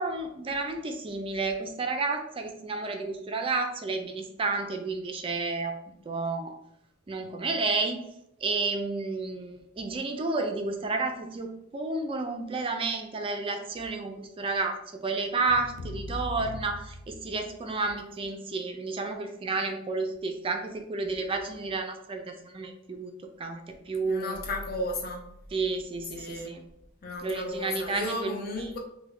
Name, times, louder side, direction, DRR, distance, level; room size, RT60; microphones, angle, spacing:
voice 1, 0.0-5.8 6.1-6.5 7.1-8.0 8.4-23.1 23.4-24.4 25.5-26.6 27.2-28.3 28.6-28.7, right 3 dB, 25° right, 5 dB, 0.3 m, -31 dB
sound 1, 15.5-17.8, left 2 dB, 90° left, 0.4 m, -40 dB
voice 2, 24.0-25.2 26.2-26.5 27.0-28.8, left 1 dB, 50° left, 1 dB, 0.6 m, -34 dB
3.2 x 2.1 x 3.5 m, 0.80 s
head